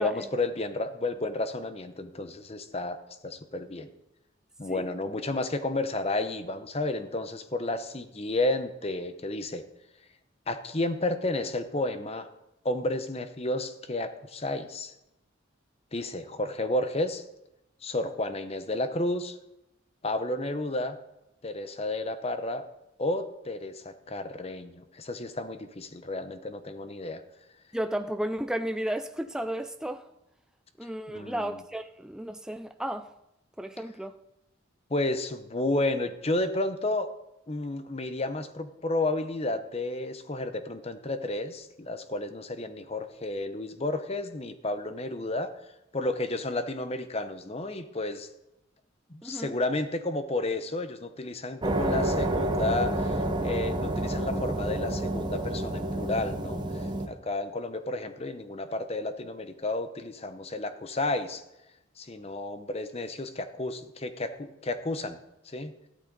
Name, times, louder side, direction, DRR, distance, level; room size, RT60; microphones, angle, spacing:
voice 1, 0.0-3.0 3.2-3.9 4.6-9.6 10.5-12.3 12.6-14.9 15.9-17.2 17.8-19.4 20.0-21.0 21.4-22.6 23.0-27.2 30.8-31.6 34.9-37.1 37.5-45.5 45.9-48.3 49.1-61.4 62.0-65.2 65.4-65.7, left 2 dB, 30° left, 0.9 m, -32 dB
voice 2, 27.7-30.1 30.8-33.1 33.6-34.2 49.2-49.5, right 1 dB, 5° right, 0.4 m, -33 dB
sound 1, 51.6-57.1, right 1 dB, 20° right, 1.0 m, -29 dB
14.5 x 12.5 x 4.0 m
head